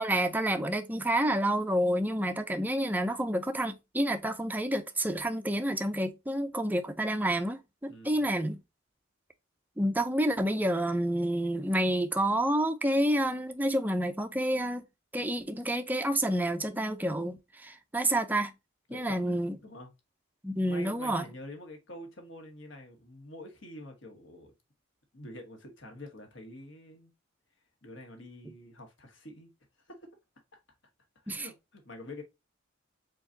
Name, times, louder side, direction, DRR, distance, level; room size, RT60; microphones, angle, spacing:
voice 1, 0.0-8.6 9.8-14.8 15.1-18.5 18.9-19.6 20.4-21.2 31.3-31.5, right 1 dB, 10° right, 0.5 m, -29 dB
voice 2, 7.9-8.3 18.9-19.9 20.6-24.5 25.1-27.1 27.8-29.5 29.8-30.1 30.5-30.6 31.2-32.2, left 1 dB, 60° left, 1.7 m, -47 dB
4.6 x 4.0 x 2.7 m
head